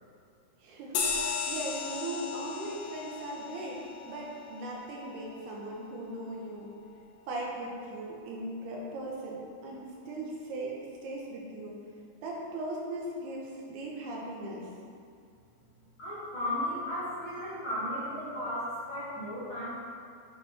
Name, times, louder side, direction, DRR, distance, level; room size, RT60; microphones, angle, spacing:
voice 1, 0.6-3.8 4.1-6.7 7.3-11.8 12.2-14.7, right 1 dB, 75° right, -3 dB, 3.0 m, -38 dB
sound 1, 0.9-5.8, left 5 dB, 75° left, 2.1 m, -36 dB
voice 2, 16.0-19.8, left 1 dB, 35° left, -12 dB, 2.3 m, -35 dB
10.5 x 6.1 x 4.3 m, 2.4 s
omnidirectional pair, 4.9 m